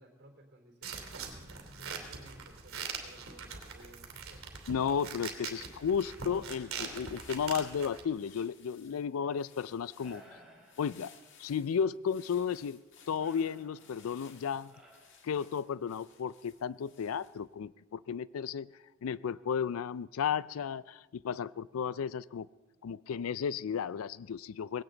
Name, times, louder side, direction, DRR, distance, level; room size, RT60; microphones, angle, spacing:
voice 1, 0.0-1.3 1.8-4.7 8.9-9.4, right 1 dB, 55° right, 1 dB, 3.6 m, -57 dB
sound 1, 0.8-8.0, right 6 dB, 80° right, 2.9 m, -43 dB
voice 2, 4.7-10.4 10.8-11.1 11.4-12.8 13.1-14.7 15.2-18.7 19.0-22.5 22.8-24.8, left 7 dB, 85° left, 19 dB, 0.4 m, -34 dB
sound 2, 6.6-17.5, left 6 dB, 60° left, 1.7 m, -60 dB
sound 3, 10.0-11.5 13.2-15.9, right 1 dB, 5° right, 4.2 m, -59 dB
20.0 x 17.5 x 3.9 m, 1.2 s
head